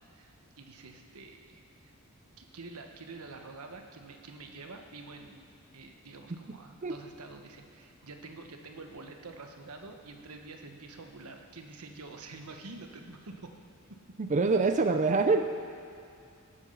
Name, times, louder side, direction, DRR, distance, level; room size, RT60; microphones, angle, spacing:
voice 1, 0.0-1.9 2.4-5.5 5.7-13.5, right 3 dB, 85° right, 4 dB, 1.2 m, -47 dB
voice 2, 14.2-15.5, right 3 dB, 35° right, 7 dB, 0.5 m, -25 dB
18.5 x 8.4 x 5.5 m, 2.4 s
head